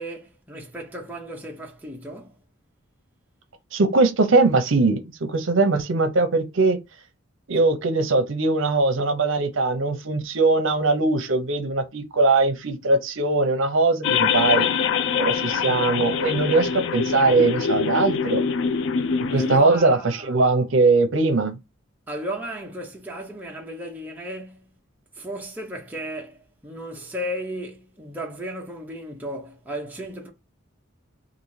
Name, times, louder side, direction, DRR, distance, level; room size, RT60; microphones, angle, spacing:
voice 1, 0.0-2.4 19.3-20.4 22.1-24.7 25.1-30.3, equal, 10° right, 0.7 m, -34 dB
voice 2, 3.7-5.0 5.3-6.8 7.5-14.7 15.2-18.4 19.3-21.5, right 3 dB, 70° right, 0.7 m, -20 dB
sound 1, 14.0-19.6, left 6 dB, 60° left, 0.3 m, -24 dB
3.8 x 2.5 x 3.2 m
head